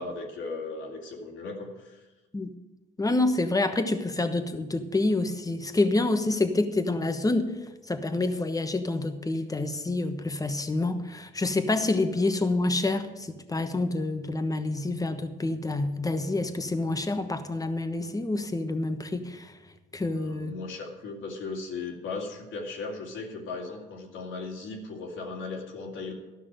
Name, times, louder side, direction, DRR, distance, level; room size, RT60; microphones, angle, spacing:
voice 1, 0.0-2.0 20.2-26.1, left 3 dB, 85° left, -1 dB, 2.6 m, -37 dB
voice 2, 3.0-7.4 7.8-19.6 19.9-20.5, left 2 dB, 15° left, 8 dB, 1.1 m, -27 dB
12.5 x 6.0 x 9.0 m, 1.1 s
cardioid pair, 90°, 20 cm